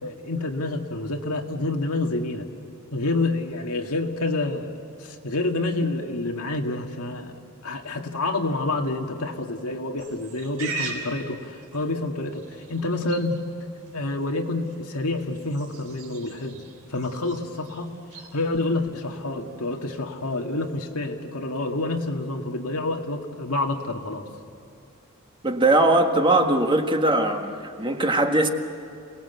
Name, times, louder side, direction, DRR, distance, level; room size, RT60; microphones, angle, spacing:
voice 1, 0.0-2.5 2.9-4.7 5.0-7.4 7.6-13.4 13.9-16.6 16.9-24.2, left 2 dB, 85° left, 3 dB, 2.0 m, -28 dB
Livestock farm animals working animals, 10.0-20.8, right 3 dB, 85° right, 3.8 m, -42 dB
voice 2, 25.4-28.5, right 2 dB, 20° right, 4 dB, 1.6 m, -20 dB
28.5 x 19.0 x 8.2 m, 2.6 s
head